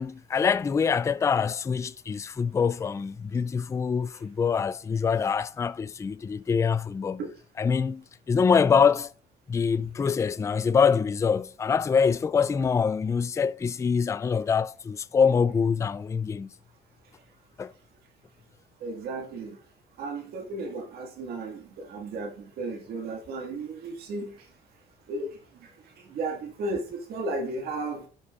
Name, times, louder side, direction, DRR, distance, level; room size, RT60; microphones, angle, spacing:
voice 1, 0.0-7.2 7.6-9.1 9.5-16.5 17.6-17.7, left 6 dB, 15° left, 0.3 m, -25 dB
voice 2, 18.8-19.5 20.0-21.6 21.9-24.3 25.1-25.3 26.1-28.0, right 2 dB, 70° right, 2.0 m, -34 dB
15.5 x 5.2 x 2.5 m
cardioid pair, 110°, 17 cm